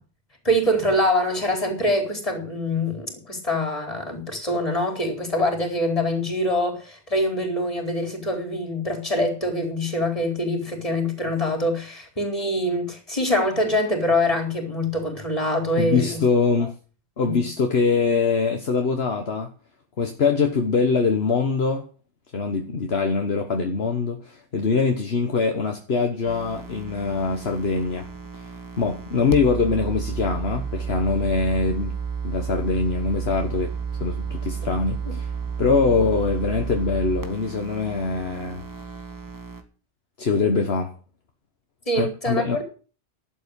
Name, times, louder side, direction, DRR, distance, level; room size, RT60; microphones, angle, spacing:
voice 1, 0.4-16.2 17.3-17.4 41.9-42.6, left 1 dB, 30° left, 4.5 m, -24 dB
voice 2, 15.8-16.7 17.2-19.5 20.0-21.9 22.3-28.1 28.8-32.0 32.2-33.7 34.0-35.3 35.6-38.6 40.2-40.9 41.9-42.6, left 4 dB, 65° left, 1.6 m, -23 dB
sound 1, 26.3-39.6, right 6 dB, 15° right, 1.6 m, -32 dB
12.0 x 8.3 x 8.2 m
omnidirectional pair, 1.2 m